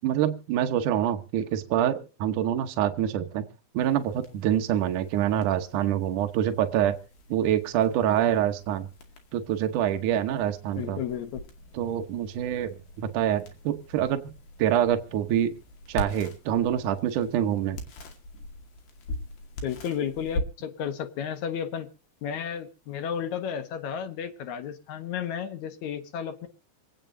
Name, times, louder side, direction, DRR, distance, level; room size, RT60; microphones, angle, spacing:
voice 1, 0.0-3.5 3.7-7.0 7.3-8.9 9.3-11.0 11.7-14.3 14.6-15.5 15.9-17.8, right 10 dB, 85° right, 6 dB, 1.8 m, -26 dB
sound 1, 3.8-23.4, left 1 dB, 60° left, 4.0 m, -43 dB
voice 2, 10.8-11.4 19.6-21.9 22.2-26.5, left 8 dB, 80° left, 6 dB, 1.6 m, -33 dB
26.5 x 9.1 x 2.7 m, 0.35 s
omnidirectional pair, 5.2 m